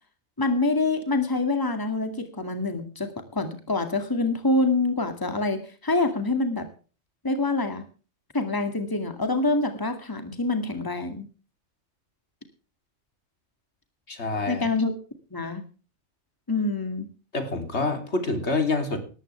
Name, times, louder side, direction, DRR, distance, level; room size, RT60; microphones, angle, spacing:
voice 1, 0.4-6.6 7.2-7.8 8.3-11.3 14.5-14.9 15.3-15.6 16.5-17.1, left 2 dB, 20° left, 7 dB, 2.2 m, -26 dB
voice 2, 14.1-14.7 17.3-19.0, left 3 dB, 70° left, 7 dB, 3.4 m, -27 dB
19.0 x 15.0 x 3.3 m, 0.37 s
omnidirectional pair, 1.2 m